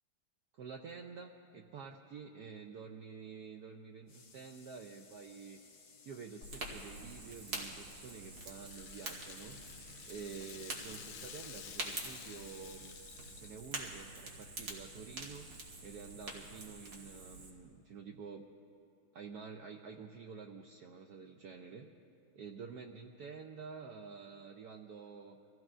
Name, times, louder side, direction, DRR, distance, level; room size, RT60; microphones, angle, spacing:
voice 1, 0.5-5.6 6.1-9.6 10.1-12.9 13.4-15.5 15.8-18.4 19.1-21.9 22.4-25.4, right 5 dB, 90° right, 4 dB, 0.8 m, -49 dB
sound 1, 4.1-13.6, left 4 dB, 55° left, 1.9 m, -60 dB
Fire, 6.4-17.5, right 2 dB, 50° right, 2.0 m, -46 dB
Rattle (instrument), 8.0-13.8, left 10 dB, 80° left, 1.4 m, -53 dB
25.0 x 16.0 x 2.5 m, 2.6 s
omnidirectional pair, 2.3 m